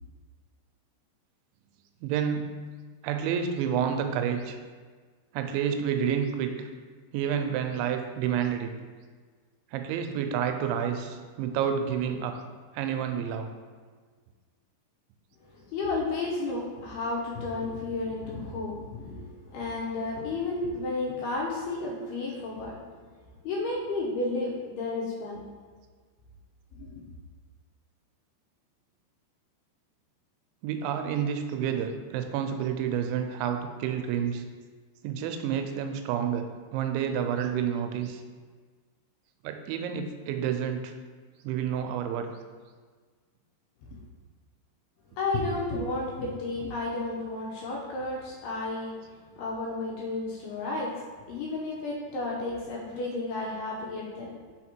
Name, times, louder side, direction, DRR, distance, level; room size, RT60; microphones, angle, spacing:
voice 1, 2.0-2.5 3.0-4.6 5.3-6.7 7.1-8.7 9.7-12.4 12.7-13.5 30.6-34.4 35.0-36.5 36.7-38.2 39.4-41.0 41.4-42.3, right 8 dB, 90° right, 6 dB, 2.9 m, -29 dB
voice 2, 15.5-22.8 23.4-25.4 26.7-27.0 45.2-49.0 49.4-51.0 51.3-54.4, left 2 dB, 75° left, -3 dB, 2.5 m, -32 dB
6.5 x 4.3 x 4.4 m, 1.5 s
omnidirectional pair, 5.2 m